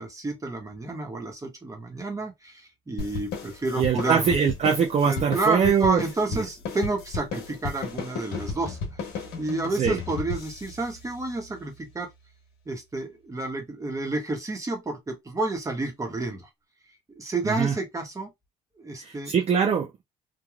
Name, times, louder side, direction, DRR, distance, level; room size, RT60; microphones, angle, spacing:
voice 1, 0.0-4.3 5.1-8.8 9.1-12.1 12.7-16.5 17.2-18.3 18.8-19.3, right 2 dB, 20° right, 1.1 m, -30 dB
sound 1, 3.0-11.8, left 4 dB, 75° left, 1.2 m, -35 dB
voice 2, 3.8-6.0 6.3-6.4 9.8-10.0 17.4-17.7 19.0-20.0, right 7 dB, 40° right, 0.6 m, -23 dB
3.1 x 2.4 x 2.4 m
cardioid pair, 110°, 17 cm